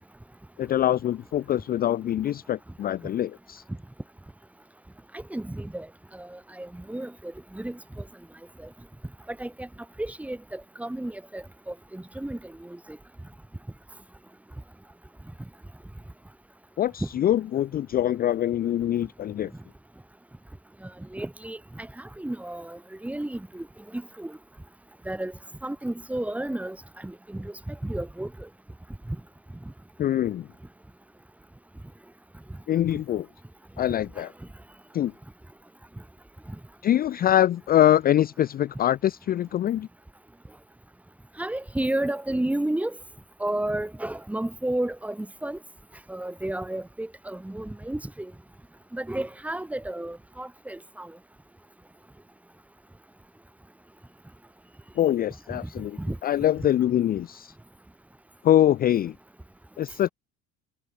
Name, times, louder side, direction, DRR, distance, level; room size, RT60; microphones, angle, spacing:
voice 1, 0.6-3.6 16.8-19.5 30.0-30.5 32.7-33.3 33.8-34.3 34.9-35.1 36.8-39.9 55.0-57.5 58.4-59.1 59.8-60.1, left 12 dB, 30° left, 0.5 m, -24 dB
voice 2, 5.1-5.9 6.1-8.0 9.3-9.7 10.0-12.8 17.0-17.1 21.1-23.7 23.9-24.4 25.1-25.3 25.6-26.8 27.0-28.5 29.1-29.2 41.4-43.0 43.4-45.6 46.1-48.3 48.9-51.1 56.0-56.2, right 1 dB, 5° right, 1.8 m, -32 dB
cardioid pair, 130°, 29 cm